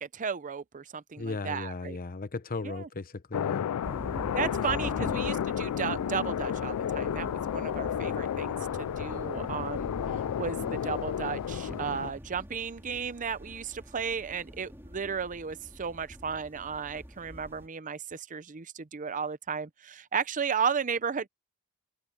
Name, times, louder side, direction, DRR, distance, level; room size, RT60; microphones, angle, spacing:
voice 1, 0.0-2.0 2.6-2.9 4.3-9.9 10.4-21.3, right 6 dB, 35° right, 0.6 m, -34 dB
voice 2, 1.2-3.7 4.5-5.1, left 3 dB, 40° left, 0.9 m, -37 dB
sound 1, 3.3-12.1, left 9 dB, 90° left, 0.3 m, -32 dB
sound 2, 3.8-17.7, equal, 10° right, 3.0 m, -44 dB
head